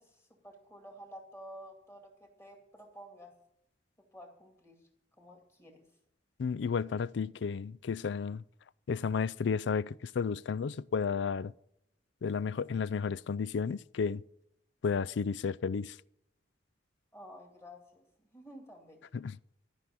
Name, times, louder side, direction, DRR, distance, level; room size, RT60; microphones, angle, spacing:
voice 1, 0.0-3.3 4.1-4.8 5.2-5.8 17.1-18.0 18.3-19.0, equal, 15° left, 2.5 m, -51 dB
voice 2, 6.4-8.4 8.9-11.5 12.2-14.2 14.8-15.9 19.1-19.4, left 5 dB, 65° left, 0.4 m, -32 dB
13.0 x 6.1 x 8.5 m
head